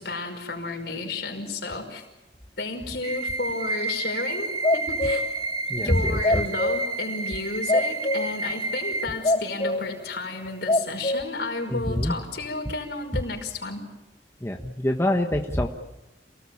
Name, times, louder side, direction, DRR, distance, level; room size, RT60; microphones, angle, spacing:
voice 1, 0.0-2.0 2.6-5.3 5.8-13.8, left 3 dB, 65° left, 2 dB, 5.5 m, -32 dB
sound 1, 3.0-9.0, right 2 dB, 25° right, 2.8 m, -30 dB
sound 2, 4.6-5.3 6.2-6.9 7.7-8.4 8.9-9.0 9.2-9.9 10.4-11.2, left 2 dB, 30° left, 0.8 m, -24 dB
voice 2, 5.7-6.4 11.7-12.1 14.4-15.7, left 1 dB, 15° left, 3 dB, 1.3 m, -25 dB
28.5 x 18.5 x 8.7 m, 1.0 s
head